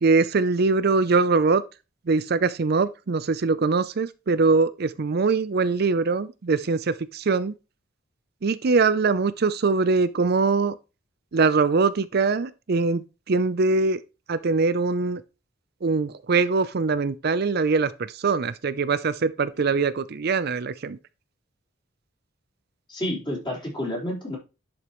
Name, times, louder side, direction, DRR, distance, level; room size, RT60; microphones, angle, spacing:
voice 1, 0.0-1.6 2.1-7.5 8.4-10.7 11.3-14.0 14.3-15.2 15.8-21.0, right 4 dB, 50° right, 0.5 m, -22 dB
voice 2, 22.9-24.4, left 1 dB, 25° left, 4.3 m, -30 dB
11.0 x 5.2 x 3.0 m
head